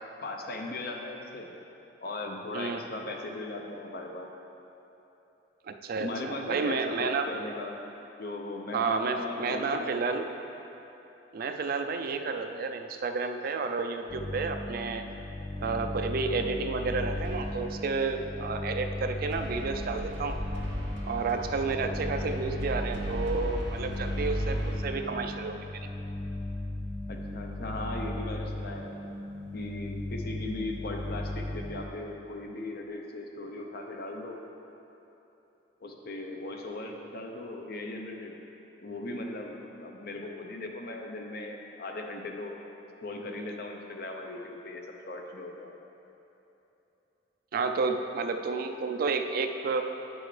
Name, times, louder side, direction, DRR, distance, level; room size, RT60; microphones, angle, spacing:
voice 1, 0.2-1.5 2.0-4.3 6.0-7.7 8.2-9.9 27.1-29.0 29.5-34.4 35.8-38.4 38.8-42.6 43.0-45.7, left 2 dB, 60° left, 2 dB, 0.7 m, -38 dB
voice 2, 5.7-7.3 8.7-10.3 11.3-15.0 15.6-20.4 21.0-25.6 47.5-49.8, right 4 dB, 55° right, 6 dB, 0.4 m, -31 dB
sound 1, 14.1-31.9, left 1 dB, 30° left, 1.3 m, -36 dB
sound 2, 17.1-17.9 19.3-24.8, right 1 dB, 75° right, 1.0 m, -37 dB
8.8 x 6.2 x 3.3 m, 3.0 s
head